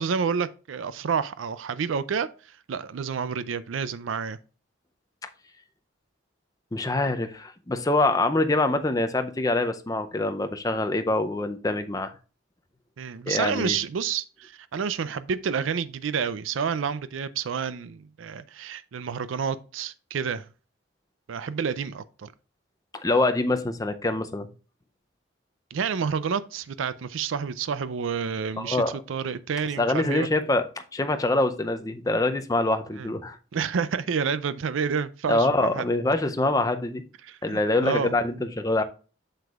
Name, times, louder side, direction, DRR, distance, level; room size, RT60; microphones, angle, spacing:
voice 1, 0.0-4.4 13.0-20.5 21.3-22.3 25.7-30.3 33.0-33.1 33.5-35.8 37.2-38.1, right 6 dB, 85° right, 0.4 m, -29 dB
voice 2, 6.7-12.1 13.3-13.8 22.9-24.5 28.6-29.0 29.8-30.6 30.9-33.4 35.3-37.0 37.4-38.8, left 2 dB, 20° left, 0.5 m, -25 dB
7.8 x 6.7 x 2.4 m
head